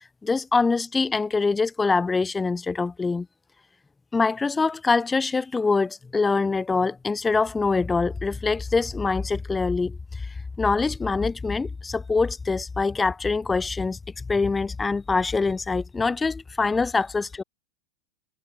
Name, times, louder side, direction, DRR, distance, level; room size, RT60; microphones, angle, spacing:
voice 1, 0.2-3.3 4.1-10.3 10.6-17.4, left 4 dB, 15° left, 1.4 m, -24 dB
hypercardioid pair, 95°, 0 cm